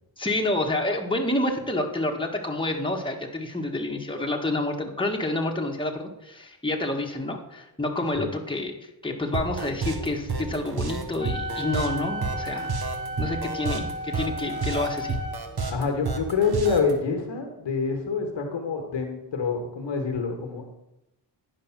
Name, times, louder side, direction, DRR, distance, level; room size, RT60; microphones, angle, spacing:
voice 1, 0.2-12.7 13.2-15.2, left 2 dB, 10° left, 1 dB, 1.6 m, -28 dB
sound 1, 9.3-16.9, right 4 dB, 55° right, 1.4 m, -30 dB
Wind instrument woodwind instrument, 11.2-15.4, equal, 10° right, 2.2 m, -34 dB
voice 2, 15.7-20.7, left 5 dB, 80° left, 4 dB, 1.7 m, -26 dB
10.0 x 5.3 x 5.9 m, 0.91 s
cardioid pair, 55°, 44 cm